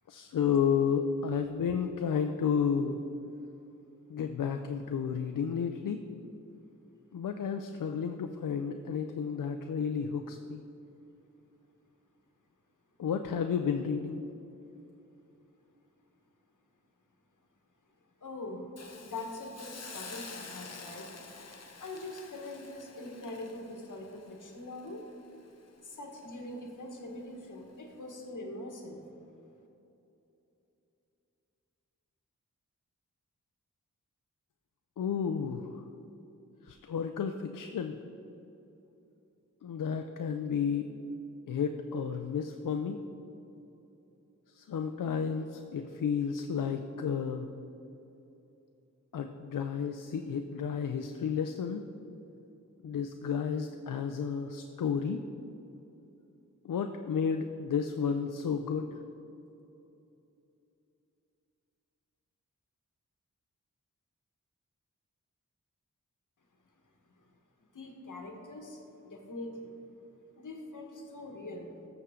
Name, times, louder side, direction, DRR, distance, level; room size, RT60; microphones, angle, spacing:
voice 1, 0.1-3.0 4.1-6.0 7.1-10.6 13.0-14.2 35.0-35.8 36.6-38.0 39.6-40.9 41.5-43.0 44.5-47.5 49.1-51.8 52.8-55.2 56.6-59.0, left 7 dB, 90° left, 6 dB, 0.5 m, -32 dB
voice 2, 18.2-18.7 19.0-21.1 21.8-25.0 25.8-29.0 67.7-69.8 70.4-71.9, left 2 dB, 70° left, 2 dB, 1.5 m, -43 dB
Hiss, 18.8-25.8 26.2-26.3, left 4 dB, 55° left, 0.9 m, -48 dB
13.5 x 7.0 x 3.7 m, 3.0 s
wide cardioid pair, 65°, 32 cm